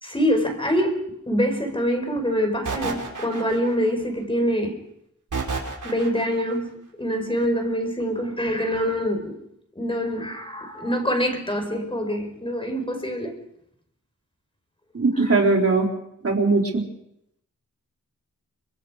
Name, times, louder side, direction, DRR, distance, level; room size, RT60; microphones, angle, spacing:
voice 1, 0.0-4.8 5.8-9.4 9.7-13.4 15.2-15.3, equal, 15° left, 6 dB, 4.5 m, -25 dB
sound 1, 2.7-3.9 5.3-6.4, right 4 dB, 80° right, 5.5 m, -30 dB
voice 2, 14.9-15.9 16.2-16.8, right 3 dB, 50° right, 1 dB, 3.7 m, -20 dB
29.5 x 24.0 x 4.9 m, 0.78 s
wide cardioid pair, 125°, 30 cm